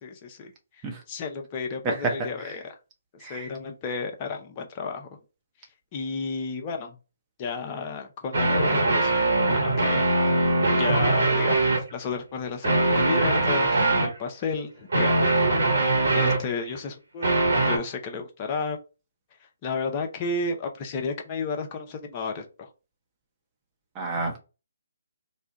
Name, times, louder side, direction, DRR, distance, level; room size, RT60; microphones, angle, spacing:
voice 1, 0.0-0.8 1.1-2.7 3.1-5.1 5.9-7.0 7.4-10.1 10.4-15.3 16.1-18.8 19.6-22.7, left 4 dB, 30° left, 0.7 m, -32 dB
sound 1, 8.3-11.8 12.6-14.2 14.9-16.6 17.2-17.8, right 2 dB, 65° right, 1.3 m, -22 dB
voice 2, 23.9-24.4, right 3 dB, 20° right, 1.0 m, -29 dB
3.2 x 2.3 x 3.8 m
figure-of-eight pair, 140°, 0 cm